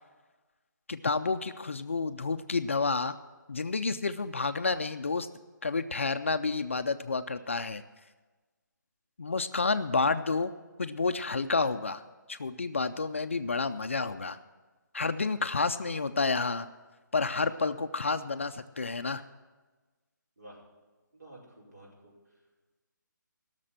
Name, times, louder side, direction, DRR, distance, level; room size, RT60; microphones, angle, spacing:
voice 1, 0.9-3.1 3.5-5.3 5.6-7.8 9.2-10.5 10.8-12.0 12.3-14.4 14.9-16.7 17.1-19.2, left 4 dB, 40° left, 10 dB, 0.4 m, -30 dB
voice 2, 21.1-22.1, right 1 dB, 60° right, -4 dB, 5.2 m, -51 dB
16.5 x 6.7 x 7.6 m, 1.3 s
hypercardioid pair, 180°, 11 cm